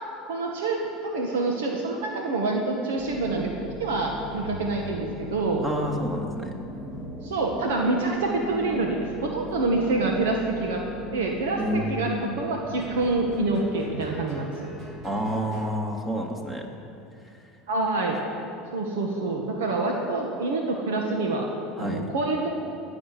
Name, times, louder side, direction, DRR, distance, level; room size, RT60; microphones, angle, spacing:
voice 1, 0.3-3.5 3.8-5.7 7.2-10.8 11.1-14.7 17.7-18.2 18.7-21.5 21.8-22.5, right 3 dB, 85° right, 1 dB, 1.7 m, -26 dB
sound 1, 3.0-15.7, equal, 35° right, 3.5 m, -39 dB
voice 2, 5.6-6.5 11.6-12.4 15.0-16.7 21.8-22.1, equal, 20° right, 2 dB, 2.8 m, -29 dB
17.5 x 7.1 x 9.7 m, 2.6 s
hypercardioid pair, 95°, 0 cm